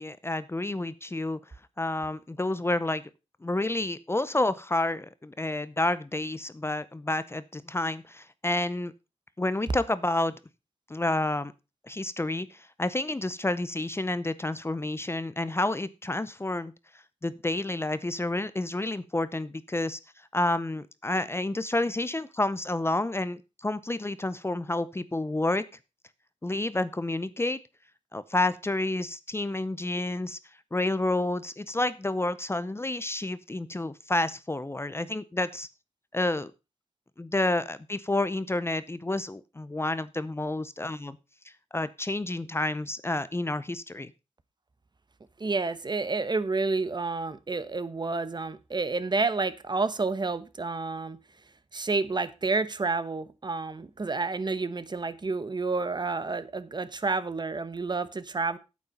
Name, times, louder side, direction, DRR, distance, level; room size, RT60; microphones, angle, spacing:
voice 1, 0.0-1.4 1.8-3.1 3.4-8.9 9.4-10.3 10.9-11.5 11.8-16.7 17.2-20.0 20.3-25.6 26.4-27.6 28.1-30.4 30.7-35.7 36.1-36.5 37.2-41.2 41.7-44.1, left 2 dB, 20° left, 15 dB, 0.6 m, -29 dB
voice 2, 45.4-51.2 51.7-58.6, right 3 dB, 40° right, 14 dB, 1.0 m, -29 dB
9.0 x 8.5 x 5.2 m, 0.28 s
wide cardioid pair, 100°, 12 cm